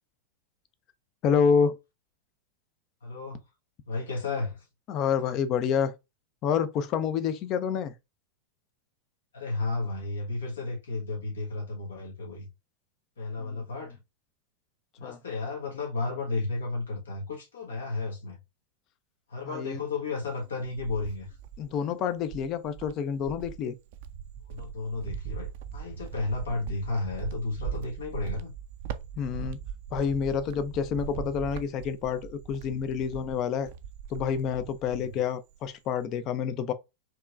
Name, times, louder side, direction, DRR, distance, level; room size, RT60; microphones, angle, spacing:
voice 1, 1.2-1.8 4.9-5.9 6.4-7.9 13.4-13.6 15.0-15.2 19.4-19.8 21.6-23.8 29.2-29.6 29.9-33.7 34.1-36.7, left 7 dB, 35° left, 0.6 m, -28 dB
voice 2, 3.0-3.4 3.8-4.6 9.3-12.5 13.2-14.0 15.0-18.4 19.3-21.3 24.5-28.5 34.9-35.1, left 3 dB, 65° left, 1.4 m, -33 dB
Cricket, 20.3-21.8 22.3-35.2 35.5-36.1, right 8 dB, 50° right, 0.5 m, -40 dB
4.5 x 3.0 x 2.4 m
figure-of-eight pair, 90°, 0 cm